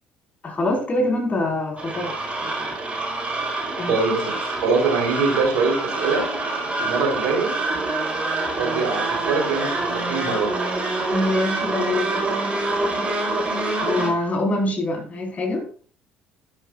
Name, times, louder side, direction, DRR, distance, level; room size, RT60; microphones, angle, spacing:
voice 1, 0.4-2.1 2.4-2.5 3.7-3.9 11.1-12.2 13.8-15.7, left 1 dB, 35° left, 1 dB, 4.9 m, -24 dB
sound 1, 1.8-14.1, right 2 dB, 25° right, 4.2 m, -26 dB
voice 2, 3.9-6.3 6.8-7.6 8.6-10.6, right 4 dB, 65° right, 2 dB, 3.8 m, -23 dB
12.0 x 11.0 x 2.5 m, 0.39 s
figure-of-eight pair, 55°, 4 cm